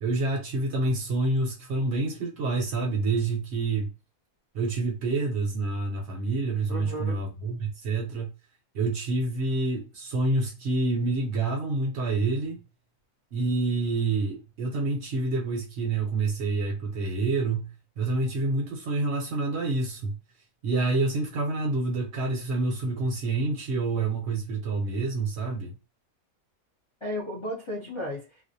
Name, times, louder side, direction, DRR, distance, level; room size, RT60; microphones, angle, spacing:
voice 1, 0.0-3.9 4.5-8.3 8.7-12.6 13.3-20.2 20.6-25.7, right 3 dB, 60° right, 0.8 m, -27 dB
voice 2, 6.7-7.2 27.0-28.4, left 1 dB, 40° left, 0.4 m, -34 dB
2.4 x 2.1 x 2.6 m
omnidirectional pair, 1.5 m